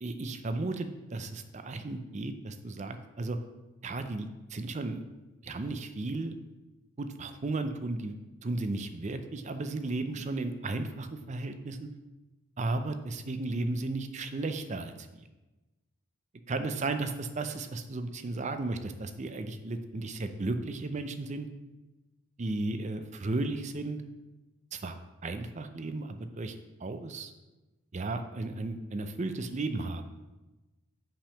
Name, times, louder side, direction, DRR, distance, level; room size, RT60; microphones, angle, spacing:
voice 1, 0.0-3.4 3.8-5.0 5.4-6.4 7.0-8.2 8.4-11.9 12.6-15.3 16.5-21.5 22.4-24.0 24.7-25.0 25.2-27.3 27.9-30.2, right 2 dB, 30° right, 8 dB, 0.5 m, -34 dB
5.8 x 5.1 x 5.7 m, 1.1 s
head